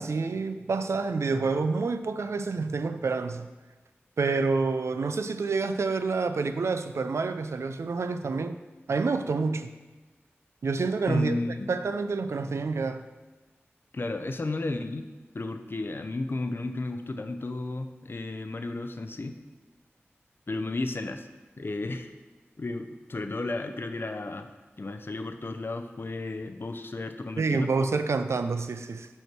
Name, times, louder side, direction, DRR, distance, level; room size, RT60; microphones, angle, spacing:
voice 1, 0.0-3.5 4.2-8.6 8.9-9.7 10.6-11.4 11.7-13.0 27.4-29.1, right 4 dB, 85° right, 10 dB, 0.4 m, -28 dB
voice 2, 11.1-11.7 13.9-15.1 15.3-19.3 20.5-21.3 21.6-22.1 22.6-24.5 24.8-27.7, left 2 dB, 55° left, 7 dB, 0.5 m, -33 dB
5.5 x 4.5 x 5.9 m, 1.3 s
cardioid pair, 45°, 5 cm